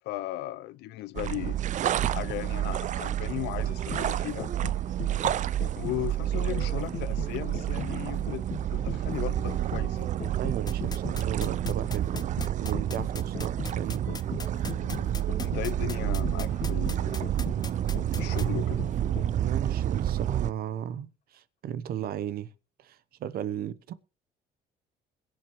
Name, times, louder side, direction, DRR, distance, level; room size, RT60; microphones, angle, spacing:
voice 1, 0.0-1.6 2.1-4.5 5.8-8.5 8.7-10.1 14.8-17.3 18.2-18.8, left 16 dB, 85° left, 0.6 m, -36 dB
sound 1, 1.2-20.5, right 11 dB, 45° right, 0.5 m, -29 dB
sound 2, 3.7-19.5 19.9-20.0, left 7 dB, 45° left, 1.3 m, -40 dB
voice 2, 10.4-14.1 19.4-22.5 22.8-23.9, right 10 dB, 65° right, 0.9 m, -35 dB
sound 3, 10.7-18.4, left 5 dB, 25° left, 0.6 m, -39 dB
21.5 x 7.8 x 3.1 m
cardioid pair, 110°, 17 cm